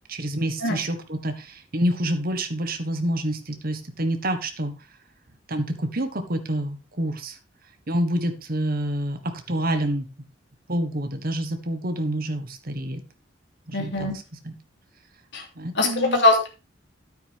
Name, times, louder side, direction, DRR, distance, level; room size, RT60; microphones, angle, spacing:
voice 1, 0.1-4.7 5.5-7.4 7.9-10.0 10.7-13.0 13.7-14.1 14.4-14.5 15.6-16.2, right 1 dB, 50° right, 7 dB, 1.5 m, -27 dB
voice 2, 13.7-14.1 15.3-15.4 15.7-16.5, left 2 dB, 65° left, 1 dB, 3.0 m, -21 dB
9.4 x 9.0 x 3.6 m, 0.29 s
head